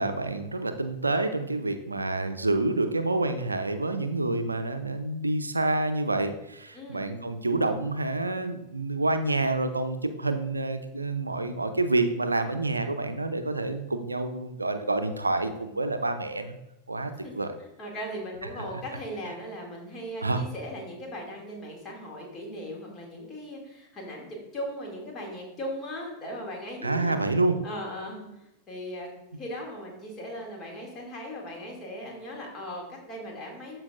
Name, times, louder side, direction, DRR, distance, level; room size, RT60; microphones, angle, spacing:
voice 1, 0.0-16.6 16.9-17.5 18.5-18.6 20.2-20.4 26.8-27.6, right 2 dB, 80° right, 8 dB, 0.6 m, -28 dB
voice 2, 17.6-27.1 27.6-29.1 29.4-33.8, equal, 25° left, -1 dB, 2.5 m, -38 dB
13.0 x 4.6 x 2.5 m, 0.93 s
figure-of-eight pair, 90°, 0 cm